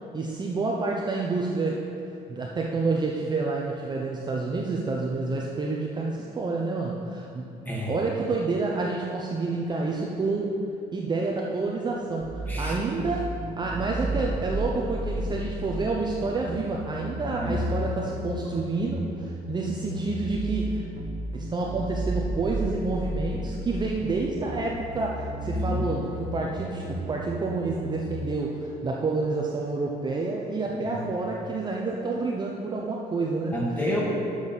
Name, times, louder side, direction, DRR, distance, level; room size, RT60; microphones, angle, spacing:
voice 1, 0.1-1.8 2.3-7.5 7.9-10.5 10.9-13.3 13.6-20.9 21.3-33.6, right 3 dB, 25° right, -1 dB, 0.7 m, -29 dB
sound 1, 12.2-28.2, equal, 50° right, 1.1 m, -33 dB
voice 2, 25.4-25.8 30.8-30.9 33.5-34.0, equal, 10° left, -5 dB, 2.1 m, -30 dB
7.0 x 6.3 x 5.5 m, 2.5 s
cardioid pair, 110°, 17 cm